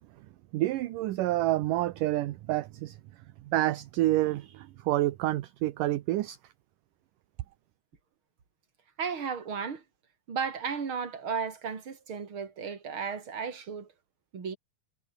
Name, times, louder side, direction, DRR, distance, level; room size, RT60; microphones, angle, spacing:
voice 1, 0.5-3.0 3.5-6.4, right 16 dB, 70° right, 2.3 m, -28 dB
voice 2, 9.0-9.8 10.3-13.9 14.3-14.6, right 6 dB, 35° right, 3.6 m, -34 dB
omnidirectional pair, 4.4 m